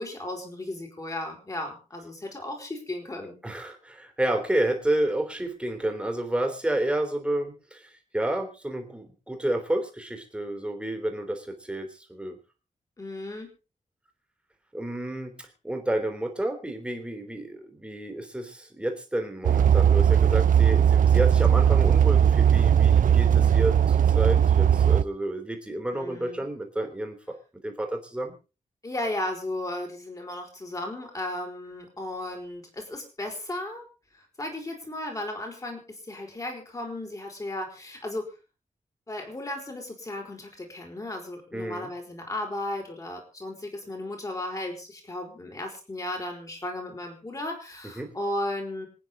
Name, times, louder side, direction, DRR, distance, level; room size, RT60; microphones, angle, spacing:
voice 1, 0.0-3.4 13.0-13.5 25.9-26.4 28.8-33.8 34.1-38.2 39.1-48.9, left 1 dB, 25° left, 2 dB, 5.1 m, -35 dB
voice 2, 3.4-12.4 14.7-27.4 27.6-28.4 41.5-41.9 48.0-48.2, right 1 dB, 10° right, 4 dB, 3.4 m, -30 dB
sound 1, 19.5-25.0, right 9 dB, 80° right, 0.7 m, -19 dB
26.0 x 9.6 x 3.9 m, 0.32 s
wide cardioid pair, 145°, 14 cm